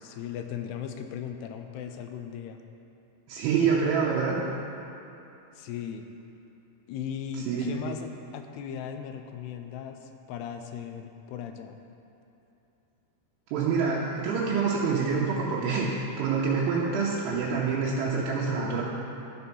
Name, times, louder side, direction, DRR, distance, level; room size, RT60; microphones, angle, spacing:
voice 1, 0.0-2.6 5.6-6.1 6.9-11.8, left 8 dB, 85° left, 6 dB, 2.7 m, -37 dB
voice 2, 3.3-4.4 7.5-7.7 13.5-18.8, right 5 dB, 85° right, -6 dB, 2.9 m, -26 dB
12.5 x 4.5 x 5.5 m, 2.9 s
omnidirectional pair, 4.7 m